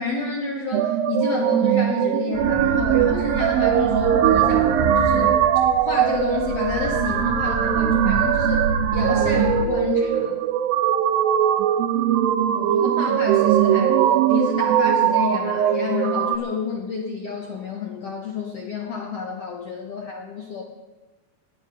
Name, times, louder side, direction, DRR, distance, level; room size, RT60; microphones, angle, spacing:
voice 1, 0.0-5.5 5.8-8.6 8.9-10.4 12.5-20.6, left 5 dB, 75° left, 0 dB, 1.4 m, -29 dB
sound 1, 0.7-16.4, right 10 dB, 85° right, 2.2 m, -20 dB
sound 2, 2.3-9.7, right 5 dB, 65° right, 2.5 m, -27 dB
19.0 x 9.5 x 5.3 m, 1.3 s
omnidirectional pair, 4.7 m